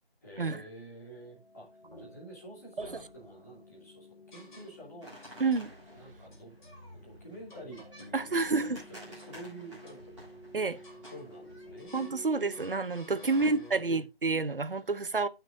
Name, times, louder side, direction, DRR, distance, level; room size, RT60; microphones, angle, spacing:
voice 1, 0.2-1.7 2.0-5.2 5.9-6.5 6.9-10.1 11.1-11.9 13.1-14.1, right 1 dB, 15° left, 3.0 m, -48 dB
sound 1, 1.1-13.8, left 1 dB, 70° left, 3.0 m, -53 dB
sound 2, 1.8-2.4 2.8-3.7 4.3-5.0 5.2-5.7 6.3-6.8 7.5-8.2 8.6-9.4 9.8-10.4 10.8-11.3 11.8-12.2 12.5-14.0, equal, 50° left, 4.8 m, -55 dB
sound 3, 5.0-11.9, equal, 5° right, 4.5 m, -52 dB
voice 2, 8.1-8.8 10.5-10.8 11.9-15.3, right 3 dB, 60° right, 0.8 m, -29 dB
15.0 x 6.2 x 2.6 m
figure-of-eight pair, 170°, 30 cm